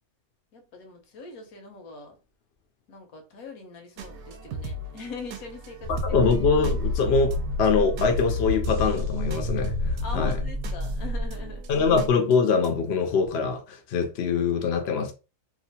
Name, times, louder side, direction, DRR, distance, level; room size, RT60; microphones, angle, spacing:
voice 1, 0.5-2.2 2.9-5.9 6.2-6.3 10.0-11.7, left 3 dB, 75° left, 1.2 m, -41 dB
sound 1, 4.0-12.9, right 3 dB, 85° right, 1.1 m, -42 dB
sound 2, 5.8-12.1, left 2 dB, 55° right, 0.7 m, -29 dB
voice 2, 5.9-10.4 11.7-15.1, left 5 dB, 60° left, 0.7 m, -24 dB
2.9 x 2.4 x 2.8 m
omnidirectional pair, 1.5 m